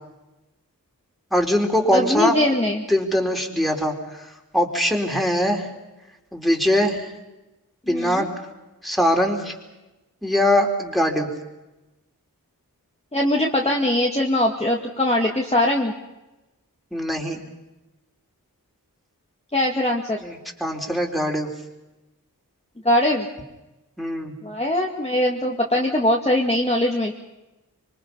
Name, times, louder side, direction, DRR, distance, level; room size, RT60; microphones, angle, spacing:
voice 1, 1.3-2.3 2.9-5.7 6.3-7.1 7.9-8.3 8.8-9.5 10.2-11.3 16.9-17.4 20.2-21.5 24.0-24.3, equal, ahead, 1 dB, 4.2 m, -22 dB
voice 2, 1.9-2.9 7.9-8.3 13.1-15.9 19.5-20.2 22.8-23.3 24.4-27.1, left 1 dB, 15° left, -1 dB, 2.2 m, -21 dB
26.0 x 24.5 x 5.6 m, 1.0 s
wide cardioid pair, 60°, 35 cm